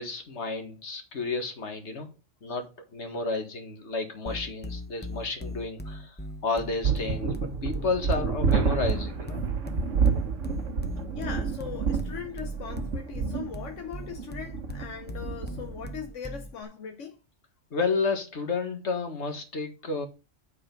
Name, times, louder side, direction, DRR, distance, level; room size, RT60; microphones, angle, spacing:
voice 1, 0.0-2.1 2.4-6.2 6.4-9.4 17.7-20.1, left 4 dB, 70° left, 1.9 m, -31 dB
sound 1, 4.3-16.6, equal, 10° left, 0.7 m, -39 dB
sound 2, 6.8-15.9, right 5 dB, 85° right, 1.4 m, -29 dB
voice 2, 11.1-17.2, left 7 dB, 90° left, 1.2 m, -40 dB
8.4 x 4.9 x 5.2 m
omnidirectional pair, 1.2 m